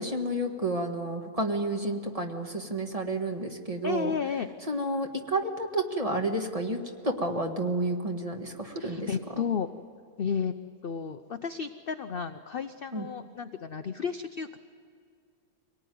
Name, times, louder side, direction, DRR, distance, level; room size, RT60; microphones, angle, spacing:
voice 1, 0.0-4.1 4.7-9.1 12.9-13.1, right 1 dB, 25° right, 3 dB, 1.7 m, -30 dB
voice 2, 3.8-4.5 8.7-9.7 10.2-10.5 10.8-14.6, left 6 dB, 50° left, 8 dB, 0.7 m, -32 dB
24.5 x 18.5 x 9.4 m, 2.3 s
omnidirectional pair, 1.6 m